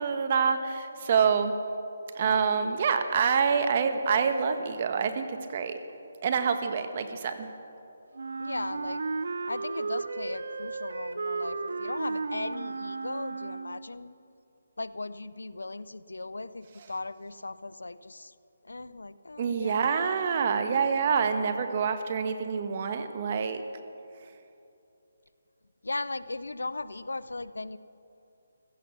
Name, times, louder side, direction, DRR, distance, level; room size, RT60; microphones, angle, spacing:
voice 1, 0.0-1.5 2.1-5.8 6.2-7.5 16.8-16.9 19.4-23.6, right 6 dB, 40° right, 8 dB, 1.3 m, -26 dB
Wind instrument woodwind instrument, 8.1-13.9, right 3 dB, 70° right, 0.8 m, -34 dB
voice 2, 8.4-9.0 9.5-14.1 14.8-18.3 18.6-20.1 25.8-27.8, left 2 dB, 90° left, 15 dB, 0.6 m, -37 dB
16.0 x 14.5 x 6.1 m, 2.7 s
figure-of-eight pair, 160°, 0 cm